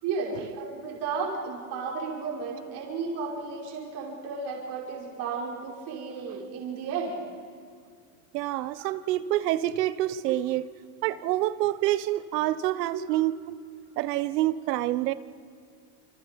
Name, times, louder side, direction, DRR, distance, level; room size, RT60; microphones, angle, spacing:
voice 1, 0.0-7.2 8.8-8.9 10.1-10.2 11.6-11.7 12.9-13.2, right 5 dB, 55° right, 5.6 m, -33 dB
voice 2, 8.3-10.7 11.0-13.6 14.0-15.1, right 15 dB, 85° right, 1.1 m, -27 dB
28.5 x 26.0 x 5.3 m
supercardioid pair, 130°, 47 cm